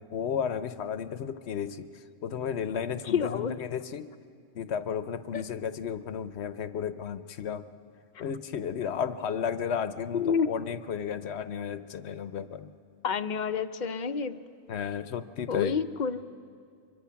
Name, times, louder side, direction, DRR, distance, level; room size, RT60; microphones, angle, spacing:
voice 1, 0.0-1.9 2.2-4.1 4.5-7.6 8.2-12.7 14.7-15.8, left 7 dB, 85° left, 12 dB, 1.0 m, -33 dB
voice 2, 3.0-3.6 5.3-5.4 8.1-8.2 10.1-10.5 13.0-14.4 15.5-16.2, left 6 dB, 50° left, 11 dB, 0.7 m, -29 dB
24.5 x 22.5 x 5.8 m, 2.3 s
omnidirectional pair, 1.1 m